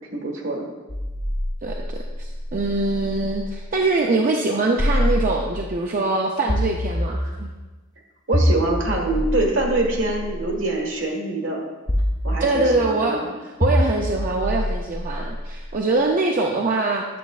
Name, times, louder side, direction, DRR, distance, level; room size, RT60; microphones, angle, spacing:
voice 1, 0.1-0.7 8.3-11.6 12.2-13.3, right 2 dB, 70° right, 0 dB, 1.5 m, -24 dB
sound 1, 0.9-3.7 4.8-5.8 6.5-7.6 8.3-10.6 11.9-13.0 13.6-15.8, equal, 20° left, 0.5 m, -25 dB
voice 2, 1.6-7.5 12.4-13.2 13.6-17.1, right 2 dB, 45° right, 0 dB, 0.5 m, -23 dB
9.2 x 6.7 x 2.4 m, 1.2 s
head